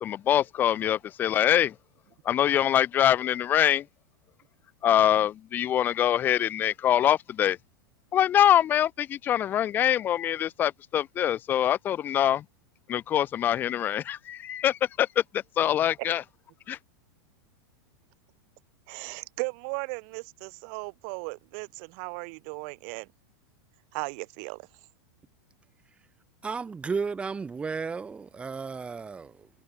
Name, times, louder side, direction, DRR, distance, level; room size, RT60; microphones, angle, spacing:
voice 1, 0.0-1.7 2.3-3.8 4.8-7.6 8.1-12.4 12.9-15.2 15.6-16.2 16.7-16.8, left 11 dB, 15° left, 0.4 m, -24 dB
voice 2, 18.9-23.1 23.9-24.7, right 40 dB or more, 40° right, 1.4 m, -36 dB
voice 3, 26.4-29.5, right 5 dB, 10° right, 3.0 m, -33 dB
supercardioid pair, 170°, 11 cm